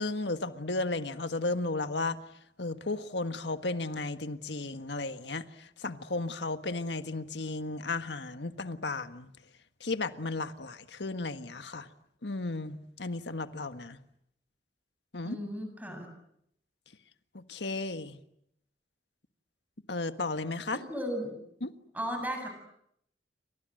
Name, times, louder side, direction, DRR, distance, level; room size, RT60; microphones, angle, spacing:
voice 1, 0.0-2.2 2.6-9.3 9.8-11.9 12.2-14.0 15.1-15.4 17.3-18.2 19.9-20.8 21.6-21.7, left 3 dB, 75° left, 1.6 m, -34 dB
voice 2, 15.2-16.1 20.7-21.4 21.9-22.5, equal, 10° right, 7.4 m, -35 dB
29.5 x 25.5 x 7.8 m
head